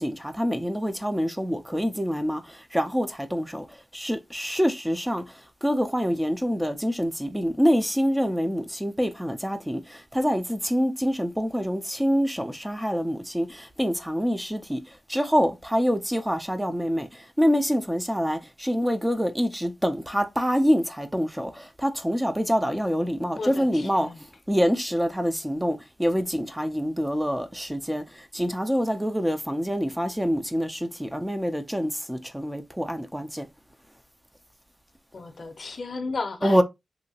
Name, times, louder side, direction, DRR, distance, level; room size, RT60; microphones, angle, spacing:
voice 1, 0.0-24.1 24.5-33.5 36.4-36.6, equal, 5° right, 0.4 m, -26 dB
voice 2, 23.4-24.2 35.1-36.6, left 3 dB, 60° left, 0.5 m, -34 dB
2.9 x 2.7 x 2.7 m
wide cardioid pair, 100°, 0 cm